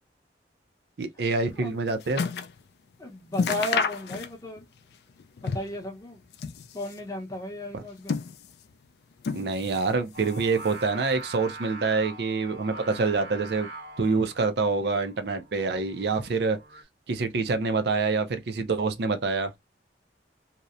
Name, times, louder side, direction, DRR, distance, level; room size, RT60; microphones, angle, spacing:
voice 1, 1.0-2.2 7.7-7.8 9.3-13.7 14.0-16.6 17.1-19.5, right 4 dB, 65° right, 0.5 m, -26 dB
sound 1, 1.4-2.6 2.9-3.0 3.3-4.6 4.9-5.8 6.2-7.1 7.7-8.7 9.2-9.9 10.2-11.0 11.6-11.7, left 5 dB, 65° left, 0.3 m, -31 dB
voice 2, 3.0-4.6 5.4-6.2 6.7-8.1, left 1 dB, 20° left, 0.7 m, -34 dB
Singing, 10.1-16.8, right 2 dB, 80° right, 1.3 m, -43 dB
2.8 x 2.0 x 2.4 m
head